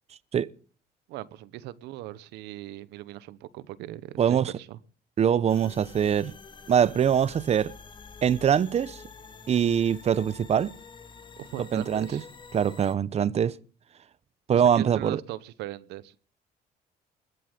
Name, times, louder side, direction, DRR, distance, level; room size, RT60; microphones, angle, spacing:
voice 1, 1.1-4.8 11.4-12.2 14.5-16.1, right 15 dB, 85° right, 1.0 m, -39 dB
voice 2, 4.2-4.5 5.2-6.3 6.7-7.7 8.2-9.0 9.5-10.7 11.6-12.2 12.5-13.6 14.5-15.2, right 8 dB, 40° right, 0.8 m, -23 dB
sound 1, 5.5-12.9, left 4 dB, 30° left, 1.4 m, -47 dB
21.0 x 7.8 x 6.7 m
cardioid pair, 110°, 17 cm